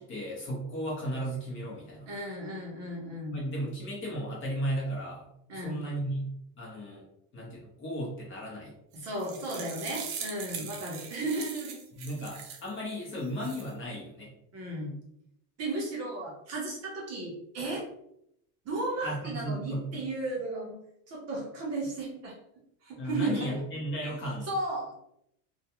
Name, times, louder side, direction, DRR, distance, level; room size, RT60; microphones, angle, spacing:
voice 1, 0.0-2.1 3.3-6.3 6.6-7.0 7.3-8.7 10.6-10.7 12.0-14.3 19.0-20.0 23.0-24.5, equal, 25° left, -3 dB, 0.7 m, -35 dB
voice 2, 2.1-3.4 5.5-5.8 8.9-11.8 14.5-14.9 15.6-17.9 18.6-20.8 21.1-22.3 22.8-23.6 24.4-24.9, right 2 dB, 35° right, -2 dB, 0.7 m, -34 dB
sound 1, 8.9-12.7 13.2-13.7, right 7 dB, 75° right, 0.7 m, -41 dB
2.3 x 2.2 x 2.8 m, 0.76 s
supercardioid pair, 145°, 46 cm